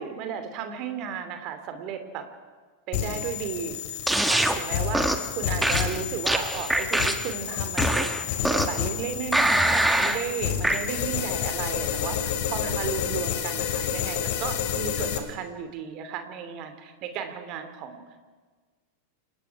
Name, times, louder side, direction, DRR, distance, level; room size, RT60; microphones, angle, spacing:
voice 1, 0.0-2.2 2.9-3.8 4.2-18.0, right 7 dB, 40° right, 8 dB, 2.8 m, -34 dB
sound 1, 2.9-15.2, left 9 dB, 50° left, 2.6 m, -30 dB
sound 2, 4.1-4.6 4.9-5.3 5.6-7.3 7.8-8.8 9.3-10.2 10.6-10.8, right 1 dB, 5° right, 1.4 m, -24 dB
29.0 x 19.0 x 4.9 m, 1.4 s
figure-of-eight pair, 90°, 0 cm